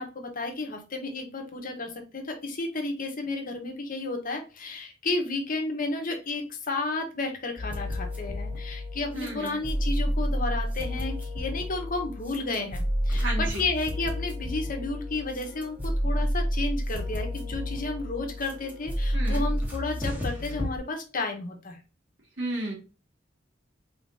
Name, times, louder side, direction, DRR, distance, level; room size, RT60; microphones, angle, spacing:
voice 1, 0.0-21.8, left 3 dB, 45° left, 3 dB, 1.1 m, -32 dB
sound 1, 7.6-20.8, equal, 10° right, 1.7 m, -30 dB
voice 2, 9.1-9.6 13.2-13.7 19.1-19.5 22.4-22.7, right 2 dB, 70° right, -2 dB, 2.2 m, -33 dB
4.0 x 3.7 x 2.7 m, 0.34 s
head